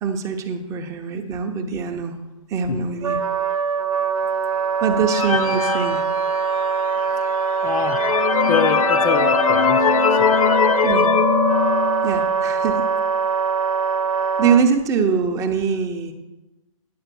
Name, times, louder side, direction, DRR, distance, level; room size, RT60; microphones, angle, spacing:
voice 1, 0.0-2.2 2.5-3.2 4.8-6.0 10.8-11.1 12.0-12.8 14.4-16.1, right 6 dB, 15° right, 6 dB, 0.7 m, -23 dB
Wind instrument woodwind instrument, 3.0-14.6, right 6 dB, 90° right, 0.7 m, -23 dB
sound 1, 5.1-6.7 7.3-7.4 7.7-12.3, left 7 dB, 80° left, 0.6 m, -20 dB
voice 2, 7.6-8.0 8.5-10.4, left 6 dB, 30° left, 7 dB, 0.5 m, -26 dB
10.0 x 5.1 x 6.8 m, 1.0 s
hypercardioid pair, 145°, 18 cm